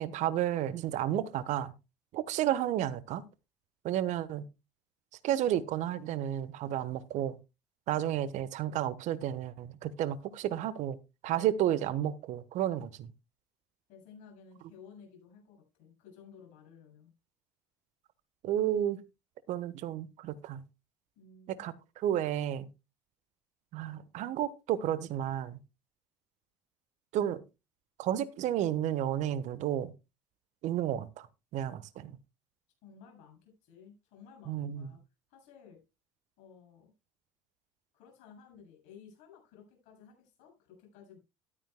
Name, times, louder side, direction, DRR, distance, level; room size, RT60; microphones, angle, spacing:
voice 1, 0.0-1.7 2.1-3.2 3.8-4.4 5.2-7.4 7.9-11.0 11.2-13.1 18.4-19.0 19.5-20.6 21.6-22.7 23.7-25.6 27.1-27.4 28.0-29.9 30.6-31.3 31.5-32.2 34.5-34.9, right 11 dB, 55° right, 1.1 m, -32 dB
voice 2, 13.9-17.1 21.2-21.6 32.8-35.0 35.3-35.8 36.4-36.9 37.9-41.2, left 6 dB, 65° left, 7.3 m, -55 dB
14.0 x 12.5 x 2.2 m
hypercardioid pair, 60°, 14 cm